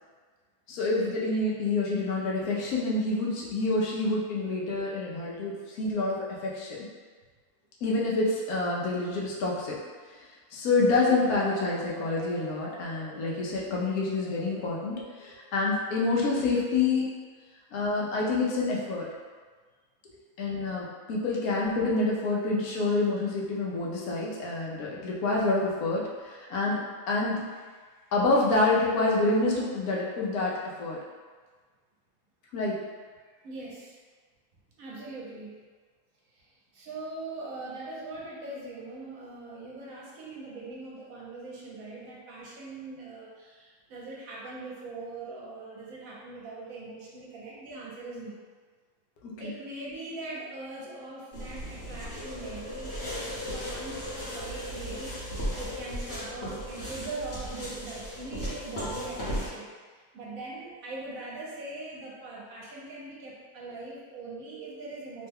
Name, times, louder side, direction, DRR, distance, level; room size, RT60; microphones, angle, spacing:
voice 1, 0.7-6.9 7.8-9.8 10.5-17.0 17.7-19.1 20.4-26.8 27.1-27.4 28.1-31.0 32.5-32.8 49.2-49.5, left 3 dB, 85° left, -4 dB, 1.2 m, -27 dB
sound 1, 11.0-15.8, right 4 dB, 20° right, 0.9 m, -46 dB
voice 2, 33.2-34.0 34.8-35.5 36.3-48.3 49.4-65.3, right 2 dB, 70° right, -4 dB, 1.1 m, -41 dB
sound 2, 51.3-59.5, equal, 50° left, 1.1 m, -36 dB
3.2 x 2.2 x 3.4 m, 1.5 s
omnidirectional pair, 1.5 m